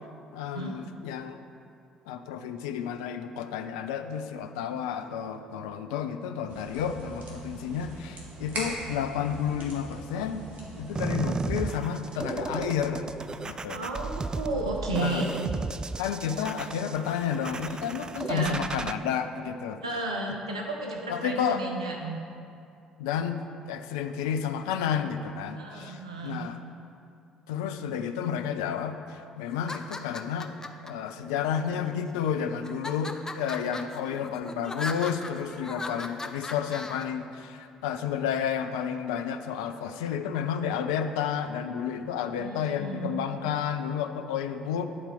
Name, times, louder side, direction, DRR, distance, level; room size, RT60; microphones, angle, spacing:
voice 1, 0.3-1.4 2.1-10.4 10.8-13.1 13.4-13.8 14.9-15.2 16.0-19.8 21.1-21.6 23.0-23.4 23.7-26.6 27.5-30.5 30.8-44.9, left 8 dB, 70° left, 8 dB, 0.4 m, -31 dB
sound 1, 6.5-13.5, right 1 dB, 55° right, 1.8 m, -42 dB
sound 2, 11.0-18.9, right 4 dB, 25° right, 0.4 m, -34 dB
voice 2, 13.7-15.4 18.3-18.6 19.8-22.2 25.5-26.4 42.4-43.2, right 2 dB, 80° right, 0 dB, 0.6 m, -33 dB
sound 3, 29.5-30.9 31.6-32.2 32.6-37.0, left 2 dB, 20° left, 0.6 m, -38 dB
9.7 x 4.3 x 6.8 m, 2.5 s
figure-of-eight pair, 50°, 3 cm